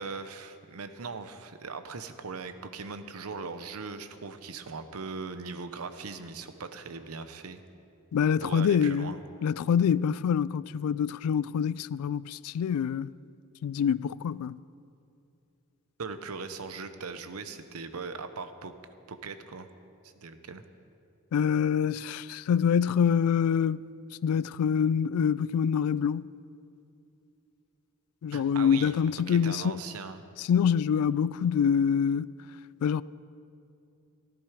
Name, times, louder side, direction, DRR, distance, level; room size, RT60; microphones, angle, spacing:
voice 1, 0.0-7.6 8.4-9.2 16.0-18.7 19.1-19.7 20.0-20.6 28.3-29.0 29.3-30.2, right 4 dB, 85° right, 0.8 m, -39 dB
voice 2, 8.1-9.1 9.4-13.1 13.6-14.6 21.3-23.8 24.2-26.3 28.2-29.8 30.4-32.3 32.8-33.0, left 7 dB, 90° left, 0.3 m, -25 dB
14.0 x 12.5 x 4.9 m
head